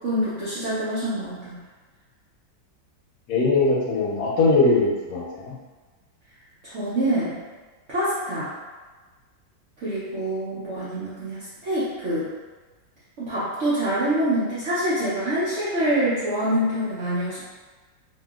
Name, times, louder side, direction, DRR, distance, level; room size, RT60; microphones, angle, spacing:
voice 1, 0.0-1.6 6.6-7.4 7.9-8.5 9.8-12.3 13.2-17.4, right 1 dB, 70° right, -11 dB, 0.7 m, -25 dB
voice 2, 3.3-5.5, left 3 dB, 65° left, -4 dB, 1.1 m, -21 dB
2.8 x 2.8 x 2.3 m, 1.3 s
omnidirectional pair, 2.0 m